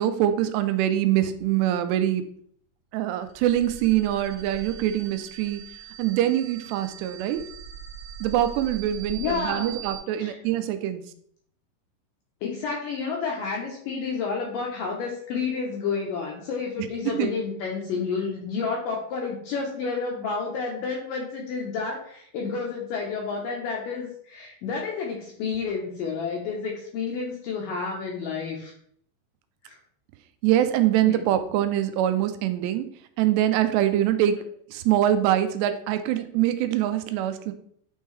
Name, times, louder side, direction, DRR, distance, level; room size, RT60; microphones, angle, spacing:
voice 1, 0.0-2.2 2.9-5.6 6.0-7.4 8.2-11.0 17.1-17.3 30.4-32.9 33.2-34.4 34.7-37.5, right 12 dB, 85° right, 9 dB, 2.7 m, -24 dB
sound 1, 3.2-10.0, right 7 dB, 60° right, 2.9 m, -41 dB
voice 2, 9.1-9.8 10.2-10.4 12.4-28.7 29.6-29.8 31.0-31.2 34.4-34.5, left 5 dB, 75° left, -1 dB, 2.1 m, -30 dB
9.3 x 3.6 x 3.2 m, 0.64 s
omnidirectional pair, 4.8 m